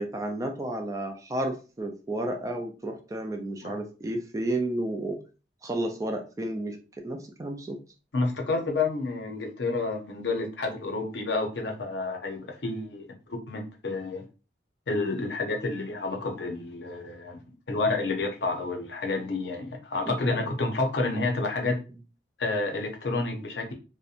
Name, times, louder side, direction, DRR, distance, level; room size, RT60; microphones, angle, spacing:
voice 1, 0.0-5.2 5.6-7.8 20.1-20.2, right 1 dB, 15° right, 4 dB, 0.3 m, -32 dB
voice 2, 8.1-14.2 14.9-17.4 17.7-21.8 22.4-23.7, left 3 dB, 70° left, 2 dB, 0.6 m, -29 dB
2.7 x 2.1 x 2.4 m, 0.34 s
head